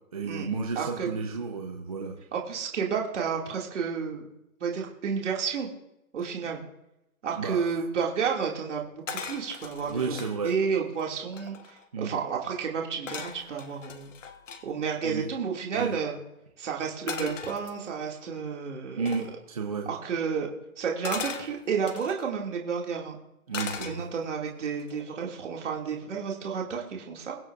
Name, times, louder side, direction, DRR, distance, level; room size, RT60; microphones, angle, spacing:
voice 1, 0.1-2.2 7.4-7.7 9.9-10.5 11.9-12.1 15.0-15.3 15.7-15.9 19.0-19.9 23.5-24.1, right 5 dB, 25° right, 1 dB, 0.7 m, -32 dB
voice 2, 0.8-1.1 2.3-4.3 4.6-5.7 6.1-6.6 7.2-10.2 10.4-14.1 14.6-16.2 16.6-19.1 19.9-20.5 20.8-23.2 23.8-27.4, right 6 dB, 55° right, -1 dB, 2.3 m, -31 dB
sound 1, 9.1-10.4 10.9-11.0 11.2-11.9 13.1-14.6 17.1-18.1 19.1-19.3 21.0-22.3 23.5-24.4 24.8-25.1, left 6 dB, 60° left, 1.4 m, -38 dB
23.0 x 7.9 x 2.4 m, 0.88 s
hypercardioid pair, 170°, 43 cm